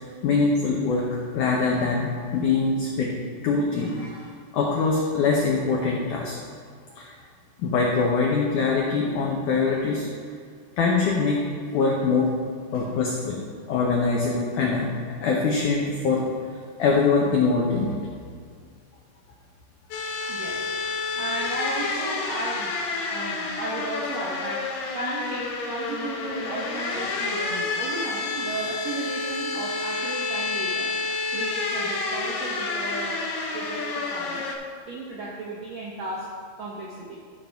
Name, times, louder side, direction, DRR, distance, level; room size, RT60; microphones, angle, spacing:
voice 1, 0.2-1.1 1.3-3.2 3.4-6.4 7.0-7.1 7.6-10.1 10.8-11.4 11.7-12.4 12.7-13.4 13.7-14.9 15.2-16.3 16.8-18.0, left 4 dB, 85° left, -2 dB, 1.7 m, -23 dB
sound 1, 19.9-34.6, left 3 dB, 70° left, 2.2 m, -29 dB
voice 2, 20.3-20.7 21.0-22.7 23.1-24.6 24.9-30.9 31.3-33.2 33.5-34.5 34.9-36.3 36.6-37.2, right 2 dB, 85° right, -5 dB, 1.5 m, -34 dB
14.0 x 5.2 x 3.5 m, 2.1 s
omnidirectional pair, 4.8 m